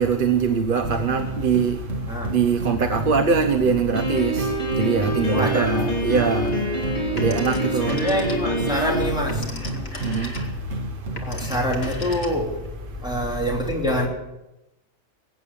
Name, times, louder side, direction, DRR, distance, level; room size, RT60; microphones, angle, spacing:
voice 1, 0.0-1.7 2.3-4.5 4.8-6.5 7.2-7.9 10.0-10.3, right 5 dB, 45° right, 7 dB, 1.0 m, -22 dB
sound 1, 0.8-12.3, right 1 dB, 65° right, 2.1 m, -31 dB
Piano, 4.0-9.1, right 1 dB, 30° left, 4.2 m, -26 dB
voice 2, 5.3-6.0 6.9-7.0 7.8-10.7 11.1-14.1, equal, 5° right, -2 dB, 3.3 m, -27 dB
Telephone, 7.2-8.7 9.1-12.7, left 2 dB, 50° left, 2.3 m, -38 dB
22.0 x 9.2 x 6.9 m, 0.94 s
omnidirectional pair, 1.4 m